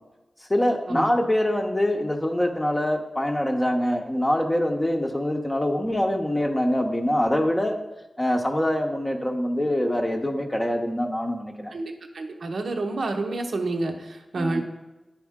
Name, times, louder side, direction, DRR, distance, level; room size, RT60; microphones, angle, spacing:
voice 1, 0.5-7.8 8.2-11.7 14.4-14.6, left 1 dB, 15° left, 2 dB, 0.7 m, -24 dB
voice 2, 11.7-14.6, right 2 dB, 75° right, 4 dB, 0.8 m, -29 dB
10.5 x 4.3 x 3.6 m, 1.1 s
wide cardioid pair, 90°, 0 cm